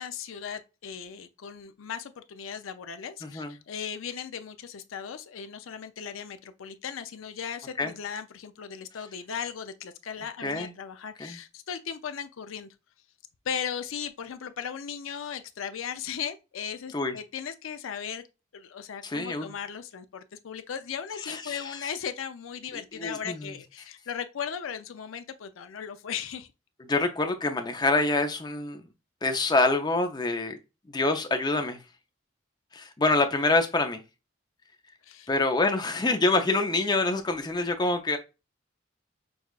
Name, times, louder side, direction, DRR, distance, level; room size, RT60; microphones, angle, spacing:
voice 1, 0.0-12.7 13.4-18.2 18.5-26.5 35.0-35.3, left 7 dB, 80° left, 0.5 m, -37 dB
voice 2, 3.2-3.5 7.8-7.9 10.4-10.7 11.2-11.4 16.9-17.1 19.0-19.5 21.3-21.8 22.9-23.5 26.9-28.8 29.2-30.6 30.9-31.8 32.7-34.0 35.3-38.2, left 2 dB, 20° left, 0.5 m, -26 dB
6.2 x 2.3 x 2.3 m
head